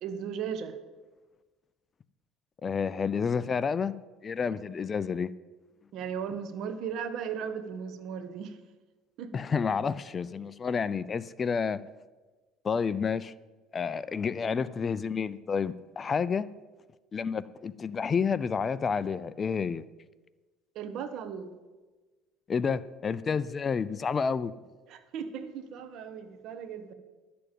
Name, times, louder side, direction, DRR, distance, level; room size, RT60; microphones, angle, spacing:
voice 1, 0.0-0.8 5.9-8.6 9.2-9.3 20.7-21.5 24.9-26.9, right 7 dB, 60° right, 1.3 m, -36 dB
voice 2, 2.6-4.0 4.2-5.3 9.3-11.8 12.6-13.3 13.7-16.5 17.1-19.8 22.5-24.5, left 6 dB, 30° left, 0.4 m, -30 dB
12.0 x 7.0 x 8.9 m
cardioid pair, 120°, 0 cm